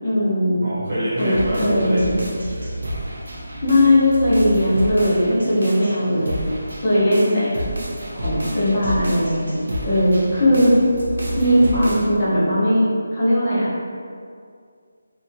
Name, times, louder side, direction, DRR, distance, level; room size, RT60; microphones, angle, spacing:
voice 1, 0.0-0.6 1.2-2.1 3.6-6.4 6.8-7.6 8.2-9.6 9.8-10.7 11.4-12.8 13.1-13.9, left 1 dB, 25° left, -11 dB, 0.8 m, -18 dB
voice 2, 0.6-2.8 8.4-8.8, equal, 50° right, -9 dB, 1.1 m, -26 dB
sound 1, 1.2-12.0, right 1 dB, 85° right, 0.7 m, -30 dB
2.8 x 2.5 x 2.6 m, 2.2 s
figure-of-eight pair, 170°, 0 cm